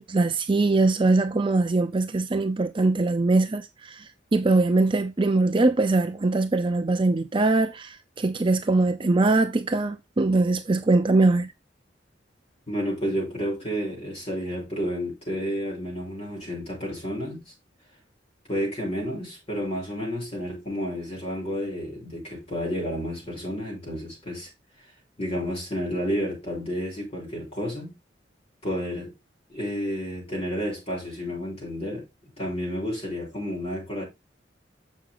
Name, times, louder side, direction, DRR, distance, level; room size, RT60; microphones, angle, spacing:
voice 1, 0.0-11.5, right 2 dB, 30° right, 0.6 m, -22 dB
voice 2, 12.7-17.4 18.5-24.5 25.2-27.9 28.6-29.1 29.5-32.0 32.4-34.0, equal, 35° left, 6.0 m, -31 dB
7.6 x 6.2 x 3.8 m
head